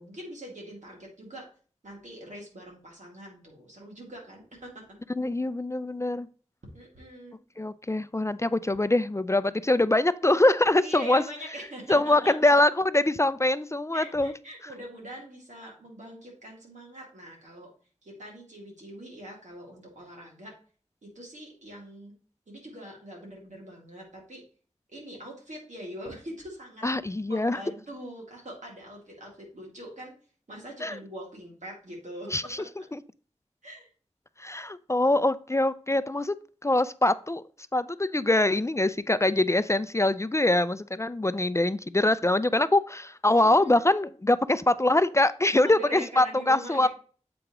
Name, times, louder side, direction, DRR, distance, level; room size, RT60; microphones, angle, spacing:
voice 1, 0.0-1.5 1.8-4.8 6.7-7.4 10.8-12.3 13.9-17.7 18.0-20.5 21.0-22.1 22.5-24.4 24.9-26.8 27.3-30.1 30.5-32.9 33.6-33.9 43.3-43.8 45.6-46.9, equal, 90° right, -2 dB, 2.4 m, -43 dB
voice 2, 5.2-6.3 7.6-11.2 11.9-14.3 26.8-27.6 30.8-31.0 32.3-32.6 34.4-36.3 36.6-37.4 37.7-46.9, left 2 dB, 25° left, 15 dB, 0.3 m, -24 dB
7.7 x 4.9 x 2.9 m, 0.41 s
wide cardioid pair, 50°, 12 cm